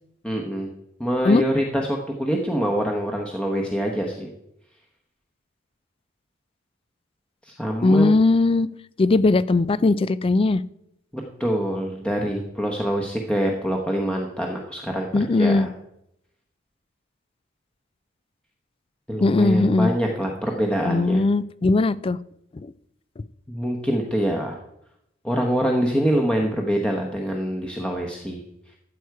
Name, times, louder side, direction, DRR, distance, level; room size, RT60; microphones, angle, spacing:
voice 1, 0.2-0.7 1.0-4.3 7.4-8.1 11.1-15.1 15.4-15.7 19.1-21.2 23.5-24.6 25.2-28.4, equal, 5° left, 0 dB, 1.0 m, -25 dB
voice 2, 7.8-8.7 9.0-10.6 15.1-15.7 19.2-19.9 20.8-22.2 22.5-22.7 23.2-23.3, left 3 dB, 25° left, 19 dB, 0.3 m, -19 dB
14.0 x 7.9 x 4.7 m, 0.80 s
head